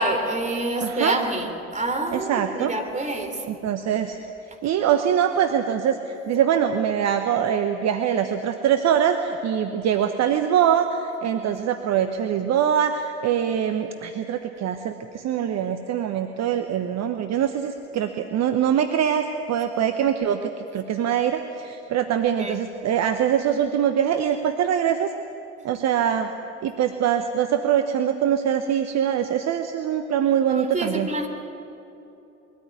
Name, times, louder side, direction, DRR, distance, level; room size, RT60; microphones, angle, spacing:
voice 1, 0.0-3.4 22.4-22.6 30.5-31.3, right 1 dB, 20° right, 4 dB, 3.5 m, -27 dB
voice 2, 0.8-1.2 2.1-2.7 3.4-4.2 4.6-25.1 25.6-26.3 26.6-31.1, right 9 dB, 45° right, 7 dB, 1.1 m, -23 dB
22.0 x 14.0 x 9.2 m, 2.9 s
hypercardioid pair, 60°, 36 cm